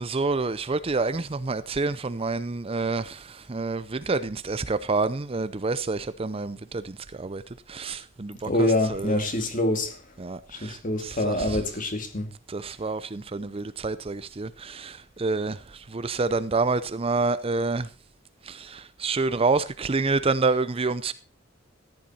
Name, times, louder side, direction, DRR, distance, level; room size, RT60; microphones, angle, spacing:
voice 1, 0.0-3.2 3.5-6.9 7.2-7.4 7.7-9.2 10.2-10.8 11.0-11.6 12.5-15.6 15.9-17.9 18.5-21.1, right 3 dB, 30° right, 0.5 m, -28 dB
voice 2, 8.5-9.9 10.6-12.3, left 2 dB, 40° left, 2.3 m, -25 dB
14.5 x 10.5 x 4.2 m
head